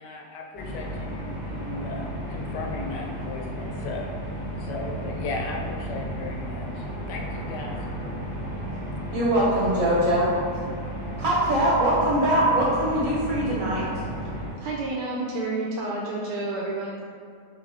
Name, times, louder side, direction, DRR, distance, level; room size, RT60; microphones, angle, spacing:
voice 1, 0.0-4.1 4.6-7.8, left 3 dB, 85° left, 0 dB, 1.3 m, -36 dB
sound 1, 0.5-14.5, equal, 30° left, 0.5 m, -33 dB
voice 2, 9.1-10.3 11.2-13.9, right 1 dB, 60° right, -6 dB, 1.0 m, -22 dB
voice 3, 14.5-17.1, right 2 dB, 80° right, -4 dB, 1.2 m, -30 dB
3.8 x 3.6 x 3.3 m, 2.3 s
omnidirectional pair, 1.8 m